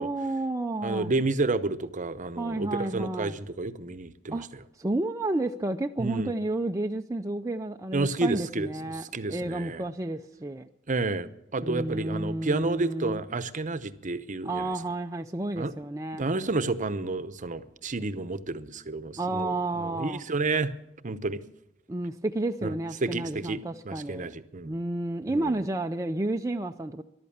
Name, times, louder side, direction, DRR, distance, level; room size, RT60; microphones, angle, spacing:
voice 1, 0.0-1.1 2.4-3.4 4.3-4.5 4.8-10.7 11.6-13.2 14.4-16.2 19.2-20.2 21.9-24.3 24.6-27.0, right 2 dB, 15° right, 4 dB, 0.5 m, -31 dB
voice 2, 0.8-4.6 6.0-6.3 7.9-9.8 10.9-14.7 15.6-15.7 16.1-20.7 21.0-21.4 22.6-22.7 23.0-24.7 25.3-25.6, right 3 dB, 40° right, 13 dB, 0.8 m, -30 dB
14.0 x 12.0 x 7.3 m, 0.86 s
head